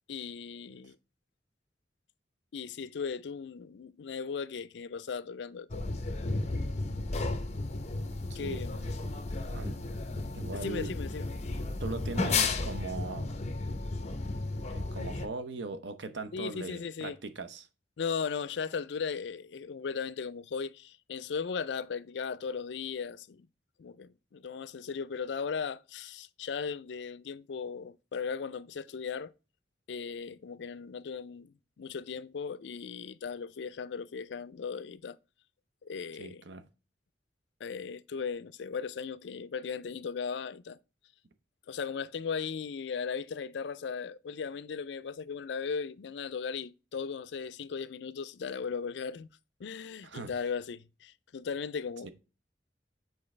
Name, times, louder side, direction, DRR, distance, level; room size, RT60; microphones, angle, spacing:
voice 1, 0.1-1.0 2.5-5.8 8.3-8.9 10.5-11.3 16.3-17.2 18.0-23.5 23.8-29.3 29.9-35.2 35.8-36.4 37.6-40.8 41.7-49.3 49.6-52.1, left 6 dB, 75° left, 0.4 m, -37 dB
sound 1, 5.7-15.3, left 3 dB, 40° left, 0.8 m, -33 dB
voice 2, 10.3-10.9 11.8-13.3 14.7-17.7 36.2-36.6 50.0-50.3 52.0-52.1, right 3 dB, 85° right, 0.8 m, -40 dB
7.3 x 4.6 x 3.2 m
head